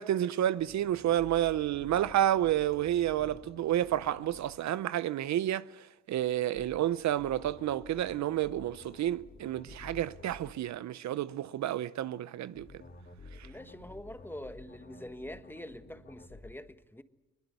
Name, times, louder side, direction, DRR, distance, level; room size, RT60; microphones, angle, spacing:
voice 1, 0.0-5.7 6.1-12.7, right 12 dB, 65° right, 0.7 m, -30 dB
sound 1, 0.6-4.5 6.5-10.5 12.6-16.5, left 3 dB, 35° left, 3.4 m, -51 dB
voice 2, 13.4-17.0, left 1 dB, 5° left, 1.4 m, -45 dB
21.5 x 20.5 x 8.1 m
cardioid pair, 90°, 30 cm